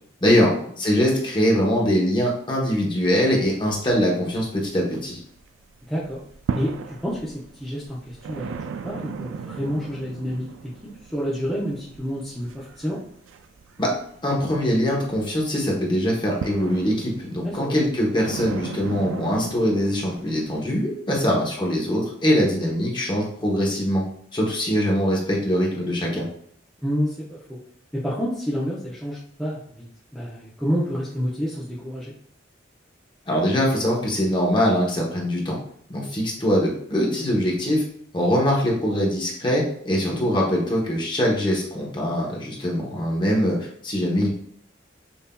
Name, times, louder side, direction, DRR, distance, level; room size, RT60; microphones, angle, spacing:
voice 1, 0.8-5.2 13.8-13.9 14.2-24.0 24.3-26.3 33.3-35.6 35.9-37.8 38.1-44.3, equal, 25° left, -2 dB, 0.9 m, -22 dB
sound 1, 3.3-5.4 5.8-20.7, right 6 dB, 80° right, 0.3 m, -37 dB
voice 2, 5.8-6.2 6.5-10.7 11.0-13.0 17.4-17.8 21.2-21.4 26.8-27.6 27.9-29.9 30.1-32.1 36.0-36.1 40.1-40.2, equal, ahead, -8 dB, 0.6 m, -29 dB
5.4 x 2.7 x 2.2 m, 0.64 s
head